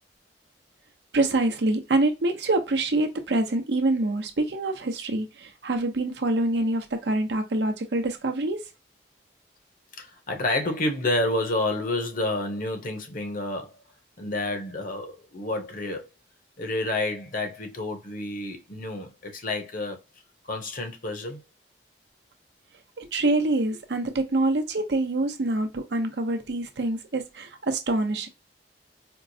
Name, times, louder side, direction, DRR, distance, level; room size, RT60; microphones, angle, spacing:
voice 1, 1.1-8.6 23.0-28.3, right 2 dB, 70° right, 0.6 m, -25 dB
voice 2, 10.0-13.7 14.2-16.1 16.6-20.0 20.4-21.4, left 2 dB, 50° left, 0.8 m, -29 dB
4.4 x 2.0 x 2.6 m
head